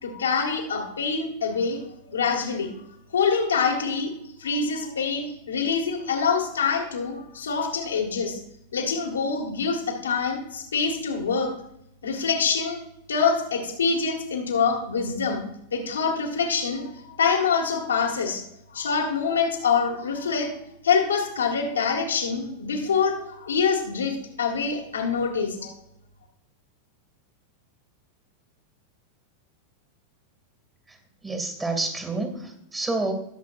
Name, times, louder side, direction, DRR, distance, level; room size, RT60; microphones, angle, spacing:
voice 1, 0.0-2.7 3.1-4.1 4.4-8.4 8.7-11.5 12.0-12.8 13.1-15.4 15.7-18.4 18.7-20.5 20.8-25.7, left 5 dB, 70° left, 0 dB, 2.0 m, -25 dB
voice 2, 31.2-33.1, right 3 dB, 15° right, 5 dB, 2.3 m, -29 dB
19.0 x 7.5 x 2.6 m, 0.79 s
figure-of-eight pair, 90°, 0 cm